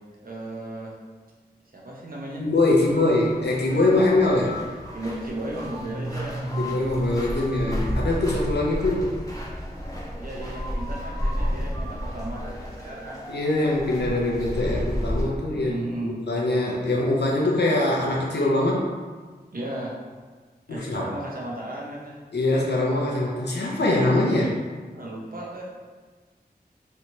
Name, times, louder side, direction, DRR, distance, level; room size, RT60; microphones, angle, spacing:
voice 1, 0.2-0.9 1.7-2.4 4.9-6.5 10.2-13.2 15.5-16.2 19.5-19.9 20.7-22.2 24.9-25.6, right 1 dB, 60° right, -4 dB, 0.8 m, -35 dB
voice 2, 2.4-4.6 6.6-9.2 13.3-18.9 20.7-21.1 22.3-24.6, left 2 dB, 85° left, -3 dB, 0.7 m, -23 dB
sound 1, 2.7-15.2, equal, 20° left, 0.8 m, -32 dB
sound 2, 5.8-9.5, right 2 dB, 15° right, 0.5 m, -34 dB
3.2 x 3.0 x 2.7 m, 1.4 s
wide cardioid pair, 70°, 17 cm